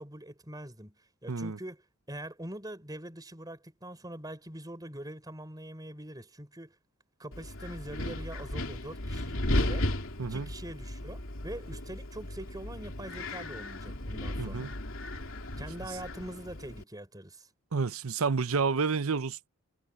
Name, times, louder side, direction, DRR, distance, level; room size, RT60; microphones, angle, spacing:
voice 1, 0.0-6.7 7.2-9.9 10.2-14.7 15.6-17.5, right 1 dB, 20° right, 5.0 m, -43 dB
voice 2, 1.3-1.6 10.2-10.5 14.4-14.7 17.7-19.5, right 5 dB, 80° right, 0.7 m, -30 dB
Wind, 7.3-16.8, left 1 dB, 70° left, 3.1 m, -35 dB
head